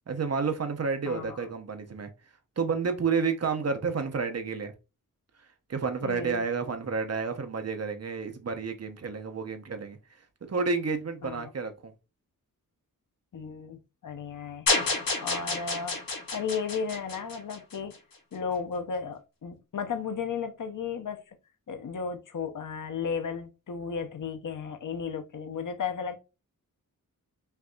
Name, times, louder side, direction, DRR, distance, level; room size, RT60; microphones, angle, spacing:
voice 1, 0.1-2.1 2.6-4.7 5.7-10.0 10.4-11.9, right 5 dB, 45° right, 0.9 m, -30 dB
voice 2, 1.1-1.5 6.0-6.4 11.2-11.5 13.3-13.8 14.0-14.7 15.2-16.0 16.3-17.9 18.3-21.2 21.7-26.2, left 6 dB, 65° left, 0.8 m, -34 dB
sound 1, 14.7-18.0, left 3 dB, 90° left, 2.0 m, -29 dB
5.7 x 2.7 x 2.4 m
wide cardioid pair, 100°, 34 cm